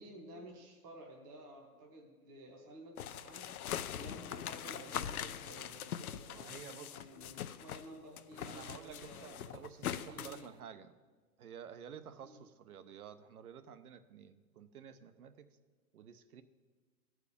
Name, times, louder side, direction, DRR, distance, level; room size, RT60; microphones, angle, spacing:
voice 1, 0.0-3.6 3.9-10.5 12.2-12.4, right 1 dB, 15° right, -1 dB, 0.8 m, -53 dB
sound 1, 3.0-7.9 8.2-10.4, left 10 dB, 70° left, 0.7 m, -42 dB
voice 2, 6.3-7.0 8.4-10.9 11.4-15.5 15.9-16.4, right 8 dB, 75° right, 10 dB, 0.9 m, -51 dB
14.0 x 4.7 x 8.4 m, 1.4 s
hypercardioid pair, 175°, 45 cm